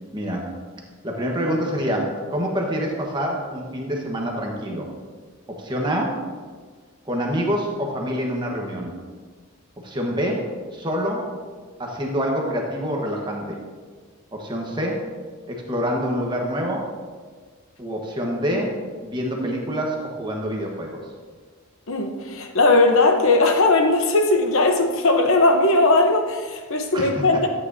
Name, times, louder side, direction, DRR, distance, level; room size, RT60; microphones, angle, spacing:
voice 1, 0.1-0.5 1.0-4.9 5.5-6.2 7.0-8.9 9.8-11.3 11.8-13.6 14.3-15.1 15.5-16.9 17.8-21.0 26.9-27.1, equal, 20° right, 0 dB, 1.2 m, -26 dB
voice 2, 21.9-27.5, left 2 dB, 75° left, 5 dB, 0.9 m, -18 dB
13.0 x 8.7 x 2.7 m, 1.5 s
head